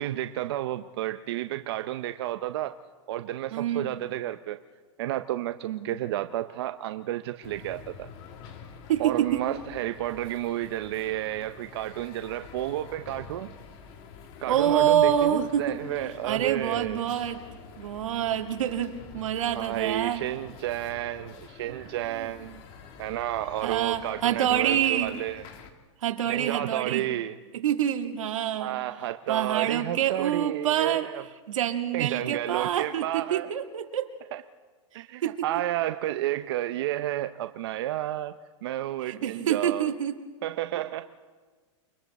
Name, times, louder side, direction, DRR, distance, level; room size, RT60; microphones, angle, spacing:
voice 1, 0.0-2.8 3.1-4.6 5.0-8.1 9.0-13.5 14.4-17.0 19.5-22.6 23.0-25.4 26.3-27.4 28.6-31.2 31.9-33.5 34.3-34.4 34.9-39.9 40.4-41.1, right 13 dB, 55° right, 0.6 m, -31 dB
voice 2, 3.5-3.9 5.6-5.9 8.9-9.4 14.5-15.8 16.2-17.4 17.8-20.3 22.1-22.3 23.6-25.2 26.0-27.1 27.5-28.8 29.3-31.1 31.5-34.1 35.2-35.4 39.0-40.2, right 10 dB, 85° right, 1.9 m, -26 dB
sound 1, 7.4-25.7, left 6 dB, 30° left, 1.4 m, -47 dB
29.0 x 22.5 x 4.2 m
supercardioid pair, 175°, 16 cm